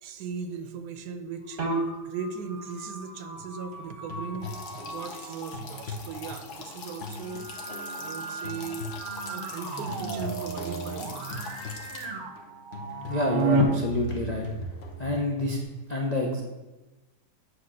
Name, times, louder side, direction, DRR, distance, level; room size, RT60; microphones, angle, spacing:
voice 1, 0.0-1.6 2.0-4.5 4.7-8.9 9.3-11.5, right 6 dB, 75° right, 9 dB, 1.1 m, -38 dB
sound 1, 1.5-5.6 7.2-15.6, right 2 dB, 40° right, 0.9 m, -33 dB
sound 2, 3.4-9.6 9.9-15.3, left 3 dB, 50° left, 0.8 m, -43 dB
sound 3, 4.4-12.1, left 4 dB, 70° left, 1.4 m, -43 dB
voice 2, 13.1-14.4 15.0-15.6 15.9-16.4, left 2 dB, 85° left, -1 dB, 0.3 m, -28 dB
8.1 x 2.8 x 6.1 m, 1.1 s
omnidirectional pair, 1.8 m